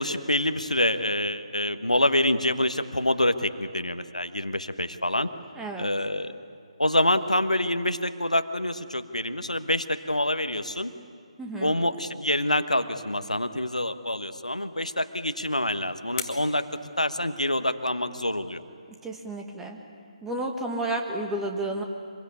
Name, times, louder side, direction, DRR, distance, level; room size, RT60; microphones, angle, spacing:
voice 1, 0.0-5.3 5.8-6.3 6.8-10.9 11.6-16.7 17.0-18.6, left 1 dB, 90° left, 9 dB, 1.3 m, -26 dB
voice 2, 5.5-5.9 11.4-11.8 19.0-19.8 20.2-21.8, right 2 dB, 5° right, 2 dB, 1.7 m, -31 dB
sound 1, 15.1-17.8, left 8 dB, 25° left, 1.8 m, -42 dB
25.5 x 22.0 x 8.4 m, 2.2 s
figure-of-eight pair, 145°, 4 cm